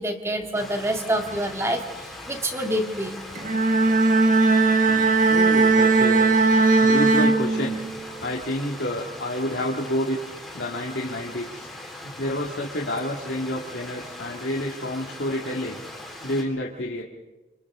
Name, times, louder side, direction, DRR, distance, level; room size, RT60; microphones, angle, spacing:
voice 1, 0.0-3.2, right 1 dB, 15° right, 4 dB, 2.0 m, -27 dB
Stream, 0.5-16.4, left 1 dB, ahead, 4.0 m, -40 dB
Bowed string instrument, 3.4-8.0, right 3 dB, 50° right, 1.6 m, -18 dB
voice 2, 5.3-6.3 6.8-7.8 8.2-10.2 10.5-11.7 12.0-15.8 16.2-17.0, left 1 dB, 80° left, -1 dB, 2.0 m, -29 dB
27.5 x 27.0 x 3.7 m, 1.2 s
head